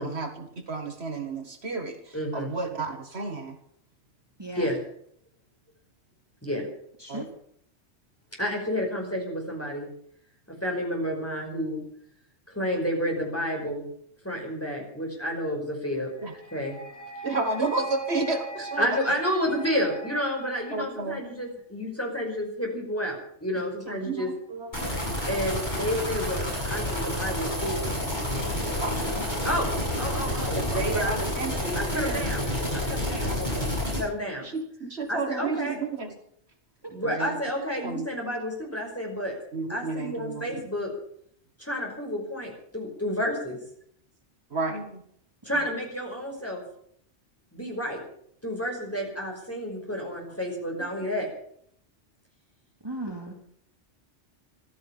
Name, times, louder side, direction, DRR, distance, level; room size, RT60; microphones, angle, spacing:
voice 1, 0.0-3.6 7.1-7.2 16.2-16.3 17.2-18.9 20.7-21.2 23.9-25.1 28.8-29.0 30.6-32.3 33.3-33.6 34.4-36.1 37.0-37.4 37.8-38.1 39.5-40.5 44.5-45.0 50.8-50.9, right 3 dB, 65° right, 6 dB, 2.0 m, -31 dB
voice 2, 2.1-2.5 4.6-4.8 6.4-6.7 8.4-9.9 10.6-11.8 12.5-13.9 14.2-16.1 16.5-16.8 18.8-24.3 25.3-27.9 29.4-31.1 31.8-32.5 32.7-33.7 33.9-34.5 35.1-35.8 36.9-39.3 39.7-40.9 41.6-43.6 45.4-46.6 47.5-48.0 48.4-51.3, equal, 10° left, 0 dB, 5.4 m, -30 dB
voice 3, 4.4-4.7 7.0-7.3 36.8-36.9 45.5-45.7 52.8-53.3, right 1 dB, 20° right, 0 dB, 2.6 m, -36 dB
sound 1, 16.2-21.2, right 3 dB, 90° left, 4.1 m, -41 dB
sound 2, 24.7-34.0, left 1 dB, 40° left, 7.7 m, -29 dB
15.0 x 13.5 x 7.2 m, 0.66 s
omnidirectional pair, 1.1 m